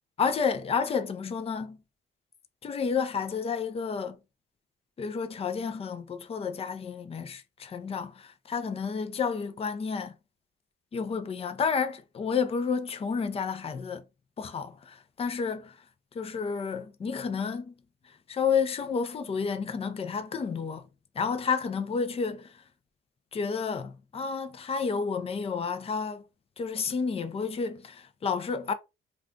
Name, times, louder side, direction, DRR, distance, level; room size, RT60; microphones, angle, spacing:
voice 1, 0.2-1.8 2.6-4.2 5.0-10.1 10.9-14.0 14.4-15.8 16.1-17.7 18.3-20.9 21.2-22.6 23.3-26.2 26.6-28.7, left 5 dB, 30° left, 0.5 m, -30 dB
2.4 x 2.4 x 3.7 m
cardioid pair, 90°, 20 cm